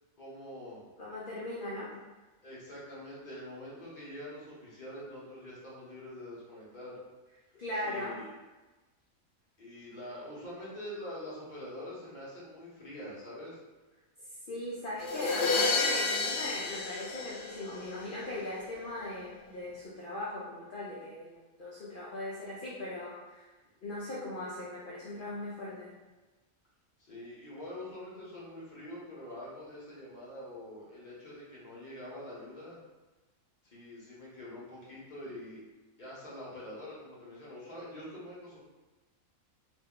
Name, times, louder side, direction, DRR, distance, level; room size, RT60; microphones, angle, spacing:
voice 1, 0.2-0.8 2.4-7.0 7.8-8.3 9.6-13.6 27.0-32.8 33.6-35.6 36.0-38.6, left 1 dB, 40° left, -7 dB, 1.0 m, -45 dB
voice 2, 1.0-1.9 7.6-8.2 14.5-23.5 23.8-25.9, left 1 dB, 55° left, -8 dB, 0.6 m, -39 dB
sound 1, 15.0-18.0, left 3 dB, 85° left, 1.0 m, -30 dB
2.8 x 2.1 x 3.6 m, 1.2 s
omnidirectional pair, 1.4 m